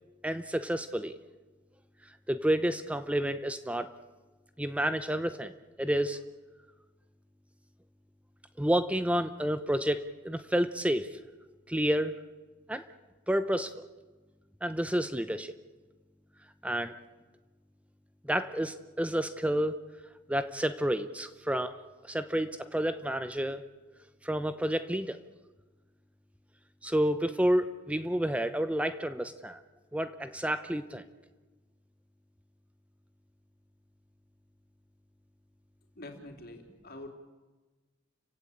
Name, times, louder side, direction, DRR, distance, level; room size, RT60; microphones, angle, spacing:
voice 1, 0.2-1.2 2.3-3.9 4.6-5.5 5.8-6.2 8.6-11.2 11.7-12.2 12.7-12.8 13.3-13.8 14.6-15.5 16.6-16.9 18.2-19.8 20.3-21.7 22.0-23.6 24.2-25.2 26.8-29.6 29.9-31.0, right 1 dB, 5° right, 10 dB, 0.8 m, -30 dB
voice 2, 36.0-37.1, left 1 dB, 55° left, 4 dB, 3.7 m, -45 dB
30.0 x 16.5 x 8.8 m, 1.2 s
head